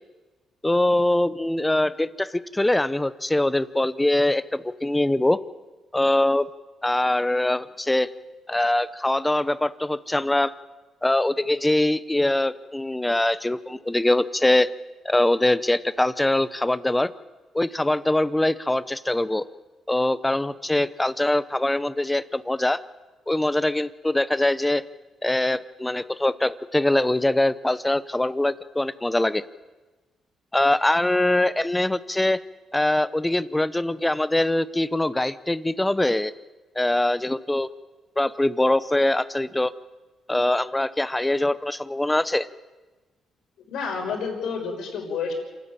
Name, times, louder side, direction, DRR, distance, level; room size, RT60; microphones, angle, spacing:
voice 1, 0.6-5.4 5.9-6.5 6.8-8.1 8.5-10.5 11.0-14.7 15.0-17.1 17.5-19.4 19.9-22.8 23.3-24.8 25.2-29.4 30.5-32.4 32.7-36.3 36.8-37.7 38.2-39.7 40.3-42.5, left 1 dB, 10° left, 15 dB, 0.8 m, -23 dB
voice 2, 43.7-45.3, left 5 dB, 80° left, 2 dB, 5.6 m, -29 dB
27.5 x 12.5 x 8.8 m, 1.2 s
cardioid pair, 90°, 0 cm